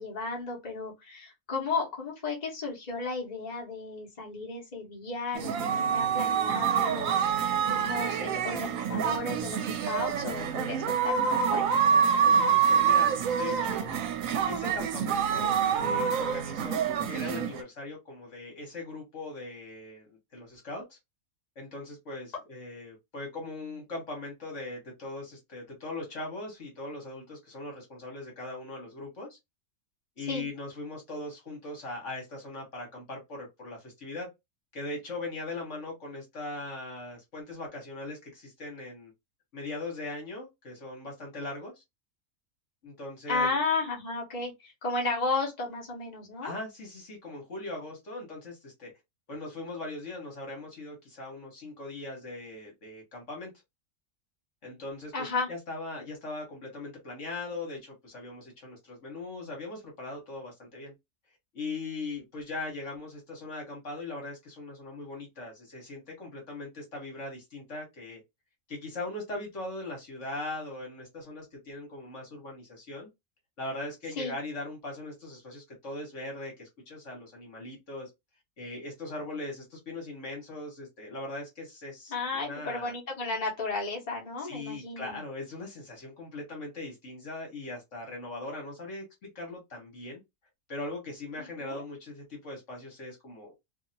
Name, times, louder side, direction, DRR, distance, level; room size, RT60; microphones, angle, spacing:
voice 1, 0.0-11.6 30.3-30.5 43.3-46.5 55.1-55.5 74.2-74.3 82.1-85.2 91.4-91.8, left 3 dB, 30° left, 1.2 m, -33 dB
sound 1, 5.3-17.6, right 7 dB, 75° right, 1.0 m, -26 dB
voice 2, 12.2-13.9 14.4-21.0 21.5-29.4 30.2-34.3 34.7-39.1 39.5-41.7 42.8-43.5 46.4-48.9 49.3-53.5 54.6-60.9 61.5-68.2 68.7-73.1 73.6-78.1 78.6-82.9 84.4-90.2 90.7-93.5, left 2 dB, 60° left, 1.5 m, -40 dB
2.8 x 2.7 x 2.7 m
omnidirectional pair, 1.5 m